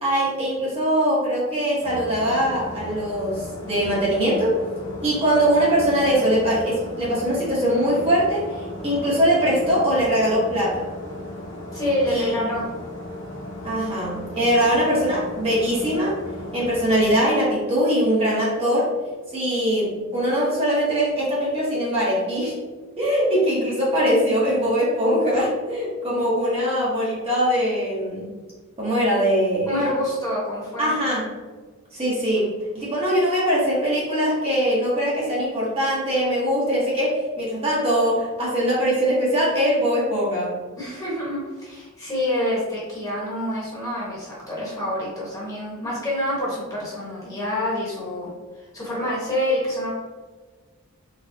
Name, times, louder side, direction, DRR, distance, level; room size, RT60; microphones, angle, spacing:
voice 1, 0.0-4.6 5.0-8.6 8.8-10.9 12.1-12.4 13.6-16.2 16.5-18.9 19.3-22.6 23.0-28.3 28.8-29.7 30.8-31.3 31.9-40.6, equal, 25° right, -7 dB, 1.0 m, -22 dB
sound 1, 1.8-17.2, left 1 dB, 55° left, 1.0 m, -36 dB
voice 2, 11.7-12.7 29.7-30.9 40.8-48.3 48.5-49.9, left 1 dB, 15° left, -6 dB, 1.2 m, -27 dB
4.2 x 3.4 x 2.7 m, 1.4 s
head